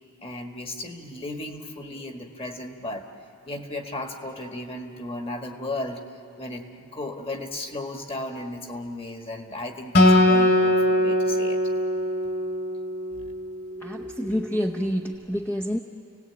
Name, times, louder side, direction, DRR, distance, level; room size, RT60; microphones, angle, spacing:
voice 1, 0.2-3.1 3.5-6.0 6.4-11.6, left 2 dB, 25° left, 4 dB, 1.7 m, -35 dB
Acoustic guitar, 9.9-13.4, left 1 dB, 50° left, 3.1 m, -21 dB
voice 2, 13.8-15.8, equal, 10° left, 2 dB, 0.8 m, -28 dB
29.5 x 18.5 x 8.8 m, 2.6 s
head